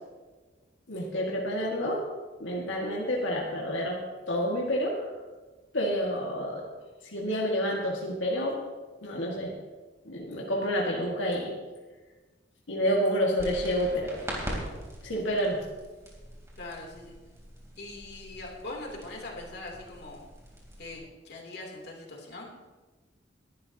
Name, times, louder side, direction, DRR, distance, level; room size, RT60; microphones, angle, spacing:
voice 1, 0.9-2.1 2.4-4.0 4.3-5.1 5.7-6.6 7.0-8.6 9.0-9.5 10.1-11.6 12.7-14.2 15.0-15.6, equal, 90° left, -2 dB, 1.9 m, -29 dB
sound 1, 13.4-21.0, equal, 15° right, 3.5 m, -42 dB
voice 2, 16.6-17.1 17.8-20.2 20.8-22.5, left 2 dB, 60° left, -1 dB, 3.1 m, -41 dB
21.0 x 12.0 x 2.9 m, 1.3 s
head